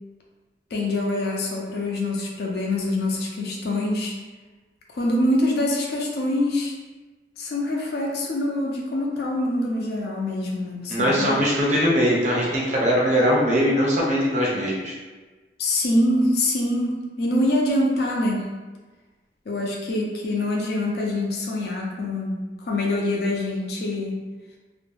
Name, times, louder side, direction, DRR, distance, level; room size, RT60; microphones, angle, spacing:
voice 1, 0.7-4.1 4.9-6.7 7.4-11.4 15.6-18.5 19.5-24.2, left 1 dB, 60° left, -1 dB, 0.4 m, -25 dB
voice 2, 10.9-15.0, equal, 40° right, -4 dB, 0.6 m, -21 dB
2.2 x 2.0 x 3.1 m, 1.3 s
head